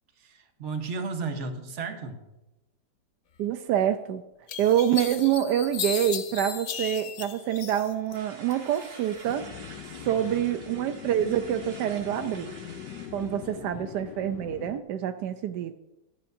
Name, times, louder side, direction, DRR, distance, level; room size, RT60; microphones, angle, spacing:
voice 1, 0.2-2.2 10.0-10.4 13.5-13.9, right 4 dB, 45° right, 6 dB, 1.3 m, -35 dB
voice 2, 3.4-4.2 4.6-9.5 10.1-12.5 13.1-15.8, right 10 dB, 80° right, 9 dB, 1.2 m, -26 dB
sound 1, 3.8-3.9 4.5-8.2 8.5-9.3, left 8 dB, 60° left, 0.8 m, -35 dB
sound 2, 8.1-13.4, right 3 dB, 65° right, 2.1 m, -48 dB
sound 3, 9.2-14.8, left 9 dB, 85° left, 1.3 m, -42 dB
14.0 x 11.5 x 2.6 m, 0.95 s
omnidirectional pair, 1.8 m